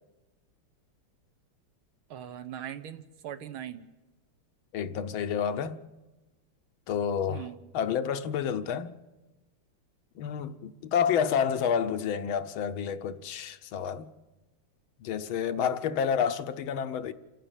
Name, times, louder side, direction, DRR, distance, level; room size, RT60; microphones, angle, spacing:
voice 1, 2.1-3.9 7.3-7.6 15.6-16.3, right 10 dB, 75° right, 1.9 m, -41 dB
voice 2, 4.7-5.8 6.9-7.5 7.7-8.9 10.2-14.1 15.0-17.1, left 7 dB, 75° left, 1.6 m, -29 dB
29.0 x 10.0 x 8.9 m
omnidirectional pair, 2.3 m